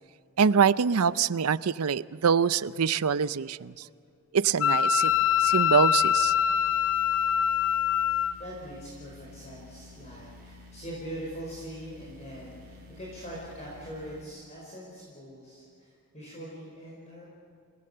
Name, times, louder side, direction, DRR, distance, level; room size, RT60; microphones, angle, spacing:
voice 1, 0.4-3.8 4.3-5.1 5.4-6.3, right 6 dB, 85° right, 17 dB, 0.5 m, -24 dB
Wind instrument woodwind instrument, 4.6-8.3, left 9 dB, 75° left, 0.6 m, -24 dB
sound 1, 5.0-14.2, left 2 dB, 45° right, 3.2 m, -51 dB
voice 2, 8.4-17.3, equal, 30° left, -4 dB, 4.9 m, -42 dB
29.5 x 18.5 x 6.8 m, 2.3 s
head